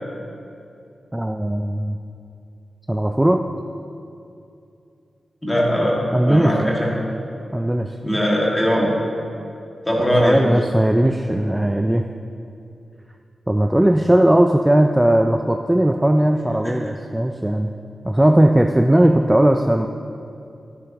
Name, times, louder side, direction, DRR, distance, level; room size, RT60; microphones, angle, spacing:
voice 1, 1.1-2.0 2.9-3.4 6.1-6.7 7.5-7.9 10.2-12.1 13.5-17.7 18.0-19.9, right 1 dB, 10° right, 4 dB, 0.3 m, -17 dB
voice 2, 5.4-7.1 8.0-8.9 9.9-10.5 16.6-16.7, equal, 15° left, -4 dB, 2.0 m, -20 dB
13.0 x 10.5 x 3.0 m, 2.6 s
wide cardioid pair, 135°, 0 cm